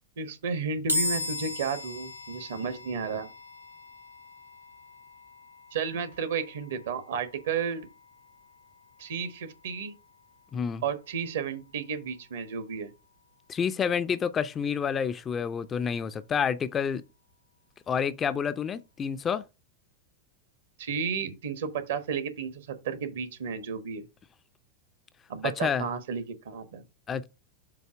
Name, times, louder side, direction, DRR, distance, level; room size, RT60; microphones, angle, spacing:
voice 1, 0.2-3.3 5.7-7.9 9.0-9.9 10.8-12.9 20.8-24.1 25.3-26.8, right 6 dB, 60° right, 1.1 m, -32 dB
sound 1, 0.9-14.2, left 2 dB, 85° right, 0.8 m, -39 dB
voice 2, 10.5-10.8 13.5-17.0 17.9-19.4 25.4-25.9 27.1-27.3, left 7 dB, 25° left, 0.5 m, -29 dB
7.4 x 2.8 x 5.9 m
figure-of-eight pair, 90°, 0 cm